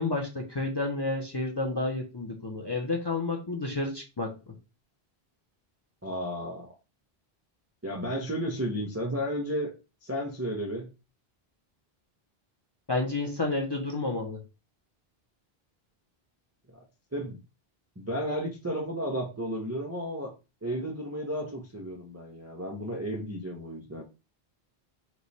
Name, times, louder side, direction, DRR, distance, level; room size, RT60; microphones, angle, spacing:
voice 1, 0.0-4.5 12.9-14.4, left 2 dB, 30° left, 0 dB, 0.5 m, -30 dB
voice 2, 6.0-6.8 7.8-9.7 10.0-10.9 16.7-16.8 17.1-17.4 18.0-20.3 20.6-24.0, equal, 25° right, 0 dB, 0.4 m, -33 dB
3.1 x 2.2 x 3.9 m, 0.30 s
omnidirectional pair, 1.0 m